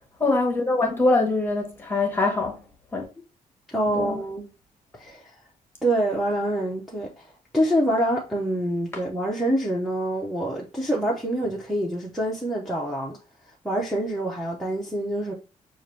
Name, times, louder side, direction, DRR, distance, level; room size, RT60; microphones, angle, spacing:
voice 1, 0.2-2.6 2.9-3.0 3.9-4.2, left 2 dB, 15° left, 1.1 m, -23 dB
voice 2, 3.7-4.5 4.9-5.3 5.8-7.3 7.5-13.2 13.6-15.3, right 1 dB, ahead, 0.7 m, -26 dB
5.8 x 2.5 x 3.1 m
cardioid pair, 165°, 14 cm